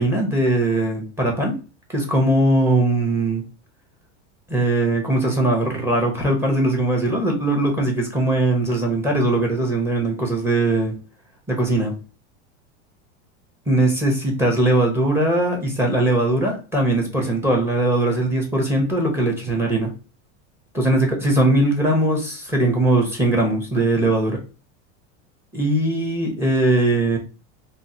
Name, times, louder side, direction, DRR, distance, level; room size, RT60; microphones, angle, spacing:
voice 1, 0.0-1.6 1.9-3.4 4.5-10.9 11.5-11.9 13.7-19.9 20.7-24.4 25.5-27.2, right 1 dB, 5° right, 1 dB, 0.9 m, -20 dB
3.5 x 2.2 x 2.6 m, 0.33 s
supercardioid pair, 135°, 35 cm